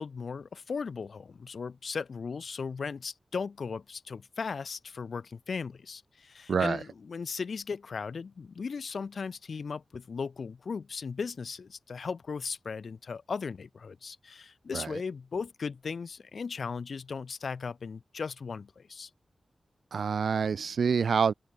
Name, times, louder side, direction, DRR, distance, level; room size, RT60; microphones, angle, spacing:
voice 1, 0.0-19.1, left 5 dB, 65° left, 1.0 m, -37 dB
voice 2, 6.5-6.8 14.7-14.9 19.9-21.3, right 6 dB, 85° right, 0.9 m, -26 dB
open air
wide cardioid pair, 135°, 0 cm